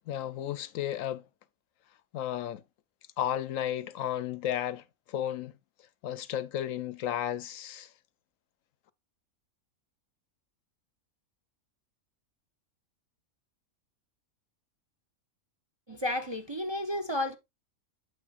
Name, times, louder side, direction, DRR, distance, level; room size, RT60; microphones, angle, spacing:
voice 1, 0.1-1.2 2.1-2.6 3.2-5.5 6.0-7.9, left 11 dB, 70° left, 0.9 m, -33 dB
voice 2, 15.9-17.3, left 1 dB, 25° right, 0.7 m, -32 dB
8.6 x 7.2 x 2.4 m
omnidirectional pair, 1.5 m